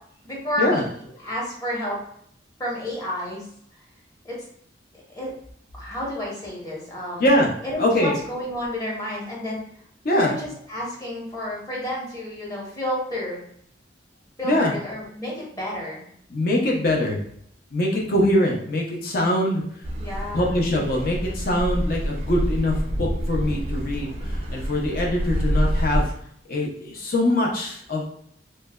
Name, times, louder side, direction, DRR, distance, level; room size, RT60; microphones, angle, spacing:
voice 1, 0.2-2.0 2.6-3.5 4.2-4.4 5.1-5.3 5.7-7.3 7.7-9.6 10.1-13.4 14.4-16.1 20.0-20.7, equal, 20° left, -5 dB, 0.9 m, -31 dB
voice 2, 7.8-8.2 10.0-10.3 14.4-14.7 16.3-17.2 17.7-19.6 20.3-24.1 24.5-26.1 26.5-28.0, left 1 dB, 55° left, -1 dB, 0.5 m, -22 dB
Car passing by / Accelerating revving vroom, 19.8-26.0, equal, 35° right, 0.4 m, -27 dB
3.0 x 2.1 x 2.2 m, 0.68 s
head